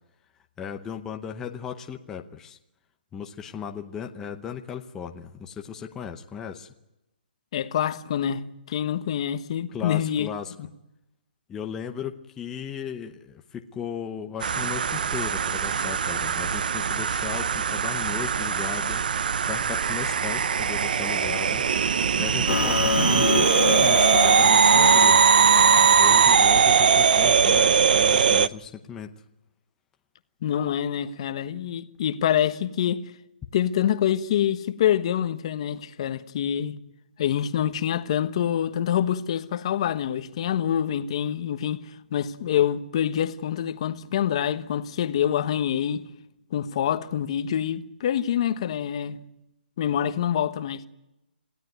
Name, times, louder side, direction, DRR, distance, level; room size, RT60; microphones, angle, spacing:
voice 1, 0.6-2.6 3.1-6.7 9.7-10.5 11.5-19.0 19.5-21.7 22.2-25.2 26.0-29.1, left 7 dB, 10° left, 0.8 m, -36 dB
voice 2, 7.5-8.4 8.7-10.3 10.6-10.7 30.4-33.0 33.5-36.8 37.2-46.1 46.5-49.2 49.8-50.8, left 10 dB, 35° left, 1.2 m, -26 dB
sound 1, 14.4-28.5, right 7 dB, 55° right, 0.8 m, -20 dB
sound 2, 22.5-26.8, left 6 dB, 80° left, 1.3 m, -27 dB
27.0 x 16.0 x 9.3 m
hypercardioid pair, 170°, 6 cm